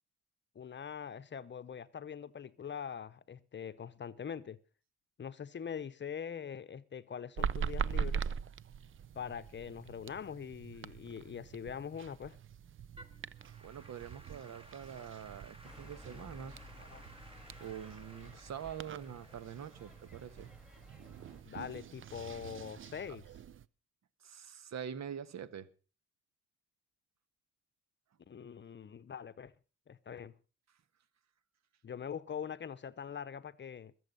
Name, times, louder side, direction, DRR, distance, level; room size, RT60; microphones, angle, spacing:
voice 1, 0.5-4.6 5.2-8.3 9.1-12.4 15.0-15.1 16.8-17.0 21.4-23.2 28.3-29.5 29.9-30.3 31.8-33.9, left 7 dB, 40° left, 0.8 m, -43 dB
sound 1, 7.4-23.6, right 7 dB, 40° right, 0.6 m, -43 dB
Applause / Keyboard (musical), 13.0-22.3, right 1 dB, 20° right, 1.9 m, -59 dB
voice 2, 13.6-16.6 17.6-20.5 24.2-25.7, right 8 dB, 60° right, 1.4 m, -45 dB
sound 2, 15.6-21.4, left 2 dB, 5° right, 3.6 m, -57 dB
21.5 x 7.8 x 5.3 m
cardioid pair, 90°, 30 cm